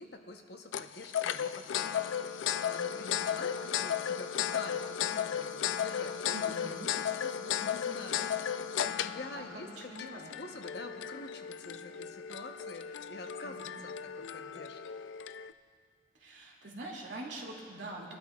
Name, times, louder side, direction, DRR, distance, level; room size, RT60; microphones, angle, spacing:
voice 1, 0.0-10.1 10.4-13.9 14.2-15.0, left 2 dB, 60° left, 4 dB, 1.0 m, -47 dB
sound 1, 0.7-15.5, left 9 dB, 90° left, 0.4 m, -35 dB
voice 2, 6.3-6.9 9.3-10.3 13.4-13.8 16.1-18.2, right 2 dB, 80° right, -2 dB, 2.4 m, -44 dB
23.5 x 12.0 x 2.4 m, 2.1 s
head